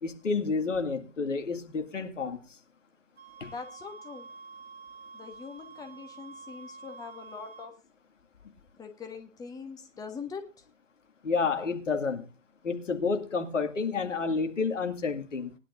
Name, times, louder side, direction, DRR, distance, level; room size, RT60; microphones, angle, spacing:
voice 1, 0.0-2.4 3.4-3.5 11.2-12.3 12.6-15.6, left 4 dB, 70° left, 2.2 m, -30 dB
sound 1, 3.2-7.7, right 4 dB, 60° right, 2.5 m, -48 dB
voice 2, 3.5-4.3 5.1-7.7 8.8-10.6, left 5 dB, 10° left, 1.3 m, -42 dB
19.5 x 11.0 x 2.6 m
figure-of-eight pair, 120°, 39 cm